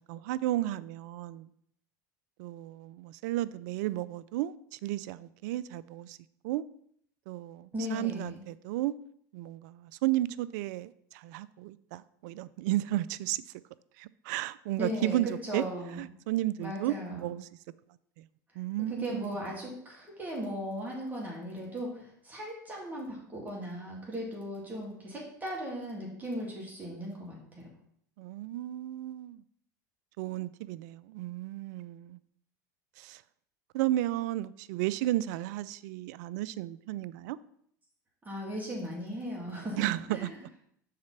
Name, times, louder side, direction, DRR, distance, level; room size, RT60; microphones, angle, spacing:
voice 1, 0.1-1.5 2.4-6.2 6.4-6.6 7.3-8.9 9.3-13.4 14.0-15.6 16.0-17.5 18.2-18.3 18.6-19.3 28.2-29.4 30.2-32.2 33.0-33.2 33.7-37.4 39.8-40.3, right 15 dB, 65° right, 0.4 m, -33 dB
voice 2, 7.7-8.4 14.8-16.0 16.6-17.3 18.8-27.7 38.2-39.8 40.1-40.3, equal, 15° right, 2.5 m, -37 dB
6.5 x 4.1 x 5.7 m
hypercardioid pair, 95°, 10 cm